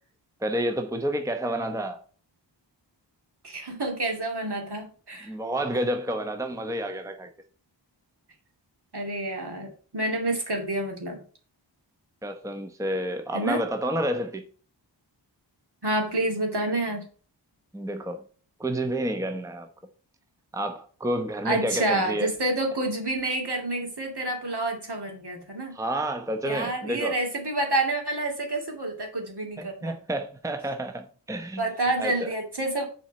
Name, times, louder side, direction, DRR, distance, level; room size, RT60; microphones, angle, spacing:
voice 1, 0.4-2.0 5.2-7.3 12.2-14.4 17.7-18.2 18.6-19.7 20.5-22.3 25.7-27.2 29.6-31.6 32.0-32.3, right 1 dB, 5° right, 0.8 m, -29 dB
voice 2, 3.4-5.3 8.9-11.2 13.3-13.6 15.8-17.1 21.4-25.8 26.4-30.0 31.6-32.9, right 2 dB, 60° right, 2.6 m, -28 dB
7.0 x 4.3 x 6.3 m
wide cardioid pair, 65°, 45 cm